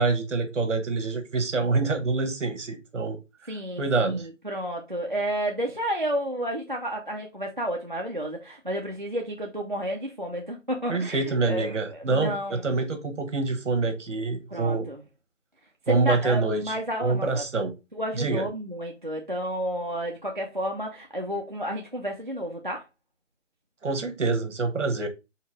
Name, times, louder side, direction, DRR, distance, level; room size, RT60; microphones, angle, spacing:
voice 1, 0.0-4.3 10.9-14.9 15.9-17.7 18.1-18.4 23.8-25.1, right 3 dB, 70° right, 1.2 m, -26 dB
voice 2, 3.5-12.6 14.5-15.0 15.9-17.4 18.0-22.8, equal, 40° right, 0.4 m, -31 dB
4.6 x 2.8 x 3.4 m
hypercardioid pair, 180°, 38 cm